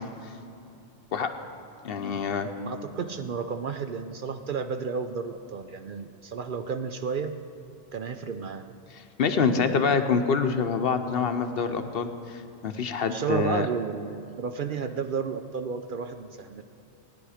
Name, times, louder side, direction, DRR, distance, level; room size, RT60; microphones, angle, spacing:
voice 1, 1.8-2.5 8.9-13.7, left 5 dB, 60° left, 8 dB, 0.9 m, -26 dB
voice 2, 2.7-7.4 7.9-8.7 9.4-10.0 13.0-16.6, right 5 dB, 55° right, 8 dB, 0.6 m, -32 dB
17.0 x 10.5 x 4.9 m, 2.7 s
omnidirectional pair, 1.2 m